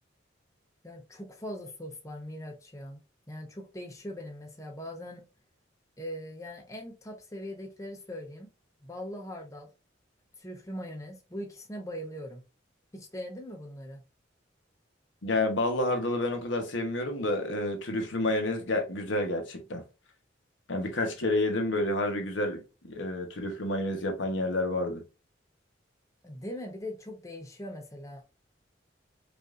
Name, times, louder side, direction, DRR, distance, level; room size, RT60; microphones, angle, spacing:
voice 1, 0.8-3.0 3.3-5.2 6.0-8.5 8.8-9.7 10.4-12.4 12.9-14.0 26.2-28.2, equal, 15° left, 0.7 m, -41 dB
voice 2, 15.2-19.8 20.7-25.0, left 1 dB, 80° left, 1.0 m, -29 dB
5.1 x 2.5 x 2.4 m
head